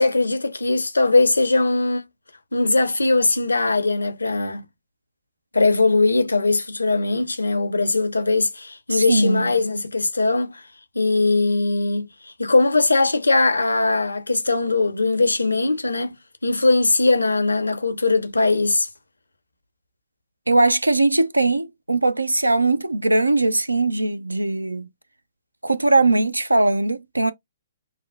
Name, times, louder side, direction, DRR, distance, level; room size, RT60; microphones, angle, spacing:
voice 1, 0.0-2.0 2.5-4.6 5.5-10.6 10.9-16.1 16.4-18.9, left 3 dB, 80° left, 0.8 m, -20 dB
voice 2, 8.9-9.5 20.5-24.9 25.6-27.3, right 2 dB, 85° right, 0.6 m, -20 dB
6.1 x 2.3 x 2.2 m
figure-of-eight pair, 125°, 0 cm